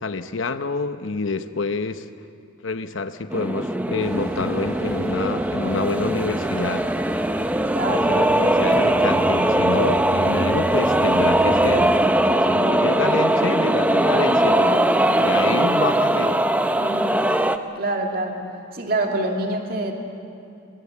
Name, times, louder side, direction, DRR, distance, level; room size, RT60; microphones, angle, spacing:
voice 1, 0.0-2.1 2.6-6.9 7.9-11.9 12.5-14.9 15.2-16.4, left 3 dB, 75° left, 10 dB, 0.9 m, -27 dB
sound 1, 3.3-17.6, right 1 dB, 10° right, 0.6 m, -20 dB
sound 2, 4.0-11.9, right 1 dB, 90° right, 4.4 m, -36 dB
voice 2, 7.7-8.1 15.3-15.4 16.8-17.1 17.7-18.4 18.7-19.9, right 2 dB, 45° right, 2 dB, 2.4 m, -26 dB
23.0 x 21.5 x 8.5 m, 2.7 s
head